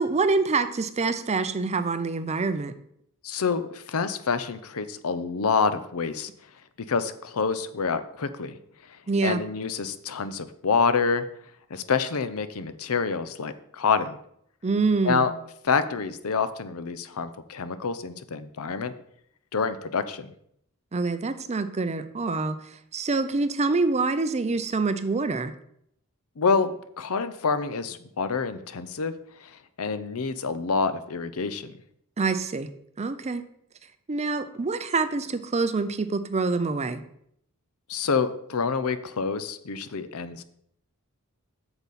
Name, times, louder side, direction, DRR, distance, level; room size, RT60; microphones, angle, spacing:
voice 1, 0.0-2.7 9.1-9.4 14.6-15.3 20.9-25.5 32.2-32.7 33.0-33.5 34.1-37.0, right 3 dB, 30° right, 11 dB, 0.5 m, -26 dB
voice 2, 3.2-6.3 6.9-8.6 9.2-11.2 11.7-14.2 15.0-15.3 15.6-18.9 19.5-20.3 26.4-29.1 29.8-31.7 37.9-40.4, left 5 dB, 70° left, 12 dB, 0.7 m, -27 dB
8.3 x 6.9 x 4.2 m, 0.71 s
head